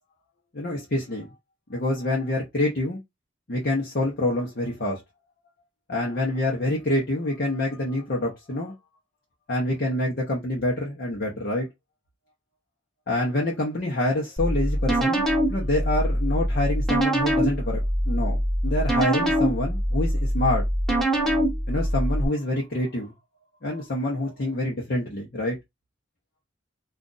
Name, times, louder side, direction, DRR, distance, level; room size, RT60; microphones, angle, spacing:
voice 1, 0.5-1.3 1.7-3.0 3.5-5.0 5.9-8.7 9.5-11.7 13.1-20.6 21.7-23.1 23.6-25.6, left 1 dB, 55° left, 0.9 m, -26 dB
sound 1, 14.4-22.3, equal, 5° left, 0.9 m, -24 dB
2.5 x 2.4 x 3.9 m
head